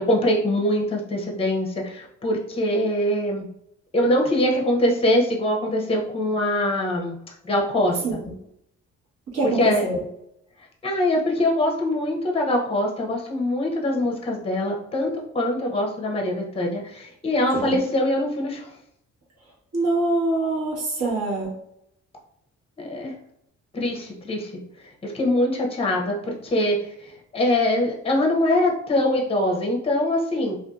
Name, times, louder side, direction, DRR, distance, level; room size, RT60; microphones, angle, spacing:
voice 1, 0.0-3.4 3.9-7.2 7.4-8.2 9.4-9.9 10.8-18.8 22.8-23.1 23.7-24.5 24.8-30.6, left 1 dB, 20° left, 0 dB, 0.6 m, -23 dB
voice 2, 9.3-10.0 17.5-17.8 19.7-21.5, right 2 dB, 55° right, -5 dB, 1.2 m, -24 dB
2.6 x 2.4 x 2.3 m, 0.75 s
cardioid pair, 90°, 30 cm